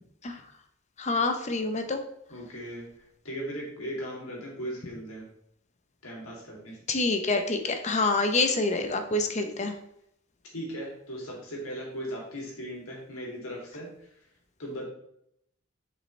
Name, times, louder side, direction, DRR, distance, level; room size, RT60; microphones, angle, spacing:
voice 1, 1.0-2.0 6.9-9.7, left 3 dB, 35° left, 6 dB, 0.8 m, -26 dB
voice 2, 2.3-2.8 3.2-5.3 6.0-6.8 10.5-13.9 14.6-14.9, equal, 80° left, -3 dB, 2.7 m, -37 dB
7.4 x 5.4 x 3.3 m, 0.75 s
head